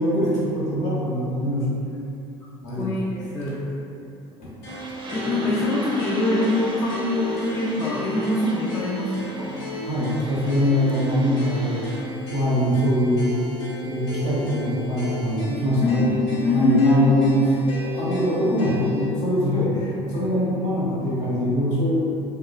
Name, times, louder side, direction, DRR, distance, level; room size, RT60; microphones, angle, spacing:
voice 1, 0.0-1.7 2.6-2.9 4.4-4.5 9.9-12.0 12.3-13.3 13.8-15.9 16.5-22.0, equal, 65° left, -9 dB, 1.0 m, -23 dB
voice 2, 2.8-3.6 5.1-9.6 15.8-17.2, left 2 dB, 30° left, -7 dB, 0.4 m, -23 dB
sound 1, 4.6-19.1, left 1 dB, 85° left, 0.8 m, -33 dB
sound 2, 4.7-12.0, right 1 dB, 35° right, 0.4 m, -38 dB
2.6 x 2.2 x 2.3 m, 2.7 s
supercardioid pair, 80°, 13 cm